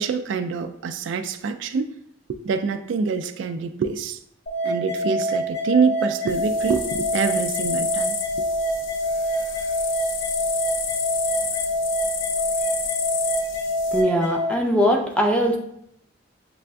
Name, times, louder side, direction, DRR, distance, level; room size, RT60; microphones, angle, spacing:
voice 1, 0.0-1.9 2.3-4.2 4.6-8.2, right 5 dB, 70° right, 10 dB, 0.3 m, -25 dB
sound 1, 4.5-14.5, equal, 55° left, 1.6 m, -26 dB
sound 2, 6.3-14.0, left 7 dB, 85° left, 0.4 m, -31 dB
voice 2, 13.9-15.6, equal, 5° left, 1 dB, 0.5 m, -20 dB
7.4 x 2.5 x 2.2 m, 0.73 s
head